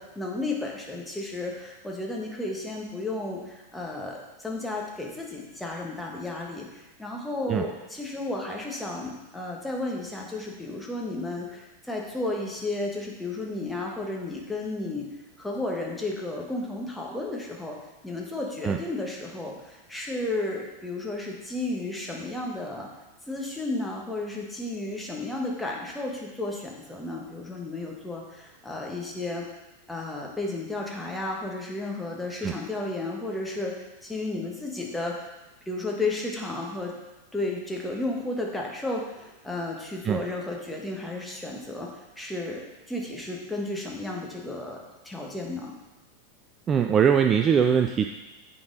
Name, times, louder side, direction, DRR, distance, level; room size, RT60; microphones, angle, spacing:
voice 1, 0.0-17.8 18.0-22.9 23.3-29.4 29.9-35.3 35.7-36.9 37.3-42.6 42.9-44.8 45.0-45.7, left 2 dB, 5° left, -1 dB, 1.2 m, -33 dB
voice 2, 46.7-48.1, right 7 dB, 25° right, 5 dB, 0.3 m, -21 dB
8.4 x 4.2 x 3.8 m, 1.0 s
figure-of-eight pair, 90°, 0 cm